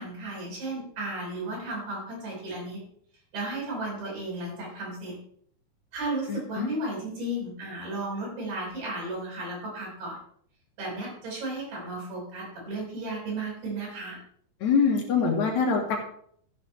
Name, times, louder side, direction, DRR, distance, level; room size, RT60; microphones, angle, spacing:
voice 1, 0.0-2.8 3.3-5.1 5.9-10.2 10.8-14.2, right 2 dB, 80° right, -4 dB, 7.4 m, -34 dB
voice 2, 6.3-6.7 14.6-16.0, left 5 dB, 60° left, 2 dB, 2.5 m, -24 dB
14.0 x 10.5 x 3.2 m, 0.62 s
omnidirectional pair, 4.3 m